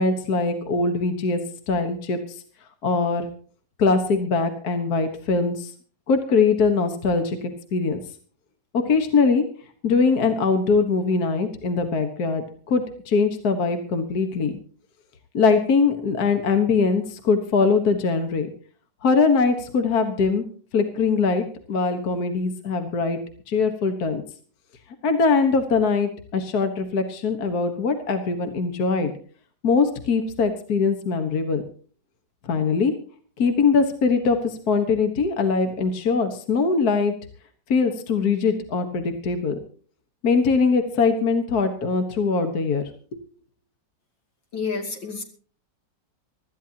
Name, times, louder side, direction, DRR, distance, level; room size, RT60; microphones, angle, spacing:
voice 1, 0.0-1.4 1.7-2.2 2.8-3.3 3.8-5.7 6.1-8.0 8.7-9.4 9.8-14.5 15.3-18.5 19.0-20.4 20.7-23.2 23.5-24.2 25.0-29.1 29.6-31.6 32.4-32.9 33.4-37.1 37.7-39.6 40.2-42.8, left 4 dB, 55° left, 7 dB, 1.9 m, -22 dB
voice 2, 44.5-45.2, left 5 dB, 80° left, 3 dB, 3.4 m, -29 dB
24.5 x 13.5 x 2.9 m, 0.43 s
omnidirectional pair, 2.0 m